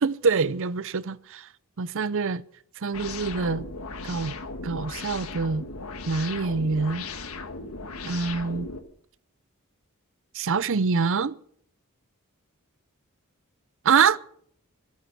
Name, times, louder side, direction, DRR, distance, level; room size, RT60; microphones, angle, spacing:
voice 1, 0.0-1.5 1.8-2.4 2.8-3.7 4.0-4.3 4.6-5.7 6.1-7.0 8.0-8.7 10.3-11.4 13.8-14.2, right 5 dB, 65° right, 0.6 m, -25 dB
sound 1, 2.9-8.8, left 3 dB, 70° left, 1.5 m, -37 dB
22.0 x 8.6 x 6.0 m
head